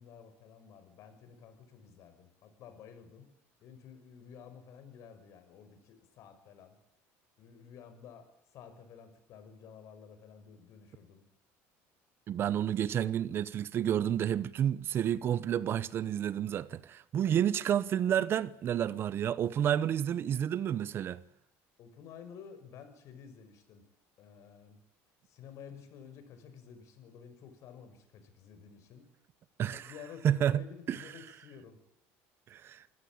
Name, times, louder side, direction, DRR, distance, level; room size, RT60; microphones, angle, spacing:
voice 1, 0.0-3.3 3.6-6.8 7.4-11.2 17.1-17.3 21.8-23.9 24.2-24.8 25.2-29.1 29.6-31.8, left 7 dB, 55° left, 6.0 m, -52 dB
voice 2, 12.3-21.2 29.6-29.8 30.2-30.6 30.9-31.0 32.5-32.8, right 10 dB, 40° right, 0.8 m, -30 dB
25.5 x 16.5 x 8.8 m
cardioid pair, 130°, 6 cm